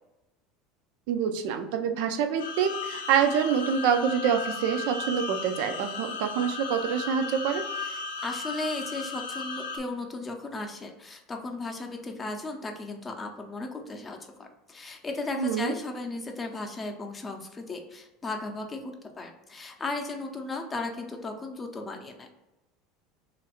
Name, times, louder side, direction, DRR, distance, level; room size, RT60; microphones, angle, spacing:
voice 1, 1.1-7.6 15.4-15.7, right 7 dB, 70° right, 7 dB, 0.4 m, -26 dB
sound 1, 2.4-9.8, left 4 dB, 80° left, 0.4 m, -36 dB
voice 2, 7.8-22.3, left 2 dB, 25° left, 4 dB, 0.6 m, -36 dB
3.0 x 2.5 x 2.9 m, 1.0 s
hypercardioid pair, 80°, 0 cm